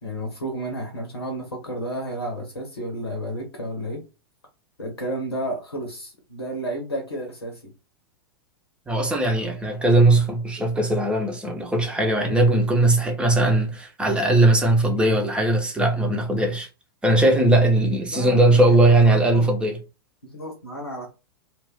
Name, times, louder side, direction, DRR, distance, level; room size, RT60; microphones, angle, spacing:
voice 1, 0.0-4.0 4.8-7.7 18.1-19.4 20.2-21.1, right 1 dB, 85° left, 0.9 m, -32 dB
voice 2, 8.9-16.7 17.0-19.8, right 2 dB, 10° right, 0.7 m, -19 dB
2.5 x 2.3 x 3.5 m
figure-of-eight pair, 95°, 13 cm